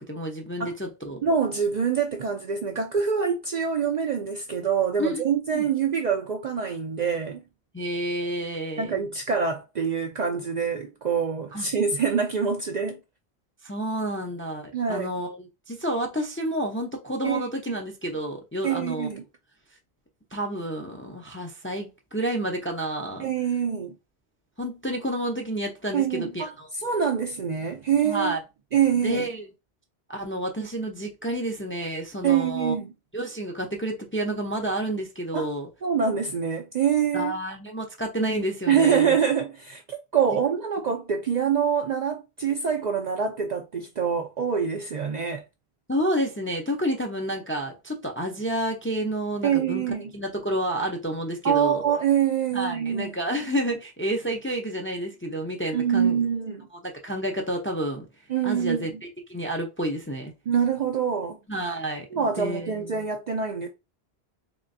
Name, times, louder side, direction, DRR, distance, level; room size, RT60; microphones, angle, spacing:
voice 1, 0.0-1.2 5.0-5.2 5.5-5.7 7.7-9.0 11.5-11.6 13.6-19.1 20.3-23.3 24.6-26.7 28.0-28.4 29.0-29.5 30.1-32.7 33.1-35.7 37.1-39.2 40.3-40.4 45.9-49.8 50.1-51.8 52.5-56.2 56.8-58.1 58.4-60.3 61.5-62.9, right 1 dB, 15° left, 0.4 m, -30 dB
voice 2, 1.2-7.4 8.8-13.0 14.7-15.1 17.2-17.8 18.6-19.2 23.2-24.0 25.9-26.5 26.8-28.3 28.7-29.3 32.2-32.9 35.3-35.5 35.8-37.3 38.7-45.4 49.4-50.1 51.4-53.1 55.7-56.7 58.3-58.9 60.5-61.4 62.1-63.7, right 7 dB, 55° right, 0.5 m, -25 dB
3.6 x 3.3 x 2.6 m
omnidirectional pair, 1.1 m